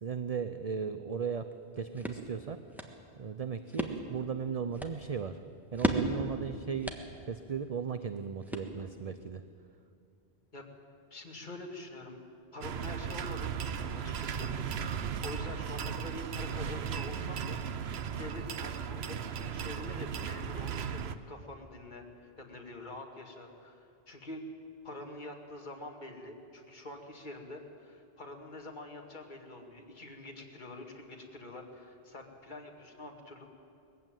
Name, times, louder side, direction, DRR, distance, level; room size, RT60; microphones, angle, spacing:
voice 1, 0.0-2.6 3.2-5.4 5.7-9.4, right 6 dB, 40° right, 10 dB, 0.7 m, -36 dB
sound 1, 1.5-9.1, right 1 dB, ahead, 1.4 m, -38 dB
voice 2, 11.1-12.2 12.5-14.9 15.2-17.6 18.2-19.2 19.5-21.0 21.3-22.0 22.4-24.4 24.8-33.4, left 2 dB, 50° left, 2 dB, 2.3 m, -46 dB
sound 2, 12.6-21.2, right 7 dB, 85° right, 1.0 m, -36 dB
20.0 x 15.0 x 9.1 m, 2.6 s
omnidirectional pair, 1.0 m